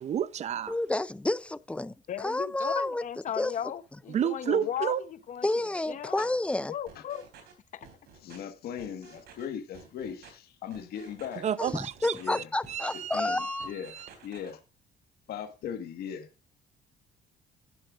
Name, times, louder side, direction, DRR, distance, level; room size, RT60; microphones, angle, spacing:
voice 1, 0.0-0.7 4.1-5.0 11.4-14.1, right 9 dB, 40° right, 0.6 m, -31 dB
voice 2, 0.7-3.0 3.4-3.5 5.4-6.7 11.6-13.7, left 2 dB, 5° left, 0.4 m, -30 dB
voice 3, 2.1-5.5 5.9-6.2 6.7-7.2 7.7-7.9, left 9 dB, 50° left, 0.9 m, -36 dB
sound 1, 6.9-7.5 7.8-8.4 8.8-9.4 9.7-10.3 10.7-11.4 11.7-12.2 12.6-13.3 13.6-14.5, right 6 dB, 70° right, 3.4 m, -52 dB
voice 4, 8.2-11.5 12.2-12.5 13.1-13.9 14.2-14.6 15.3-16.3, left 8 dB, 65° left, 1.6 m, -38 dB
11.0 x 10.0 x 2.5 m
cardioid pair, 110°, 17 cm